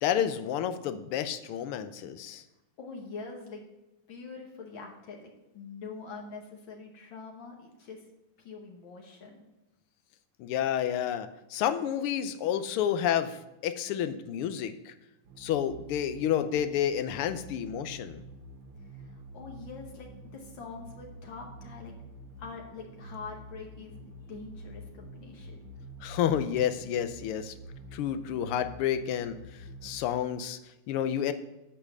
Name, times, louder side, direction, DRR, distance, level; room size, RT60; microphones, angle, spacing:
voice 1, 0.0-2.4 10.4-14.9 15.4-18.2 26.0-27.5 27.9-30.6 30.9-31.3, left 10 dB, 85° left, 10 dB, 1.6 m, -30 dB
voice 2, 2.8-3.7 4.1-8.1 8.4-9.5 18.9-21.9 22.4-25.7, left 4 dB, 65° left, 0 dB, 1.9 m, -44 dB
drone engine, 15.3-30.0, right 1 dB, 80° right, 1.8 m, -47 dB
8.5 x 5.6 x 6.6 m, 0.95 s
omnidirectional pair, 2.4 m